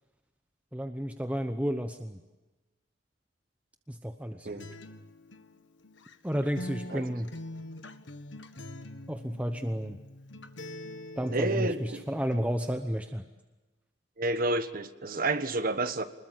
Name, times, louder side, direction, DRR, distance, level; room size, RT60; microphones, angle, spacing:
voice 1, 0.7-2.2 3.9-4.7 6.2-7.3 9.1-10.0 11.2-13.2, equal, 10° right, 6 dB, 0.9 m, -32 dB
Acoustic guitar, 4.6-12.6, left 1 dB, 85° left, 1.5 m, -44 dB
voice 2, 6.9-7.2 11.3-12.0 14.2-16.0, right 2 dB, 50° right, 10 dB, 1.4 m, -30 dB
25.0 x 21.0 x 7.6 m, 1.2 s
head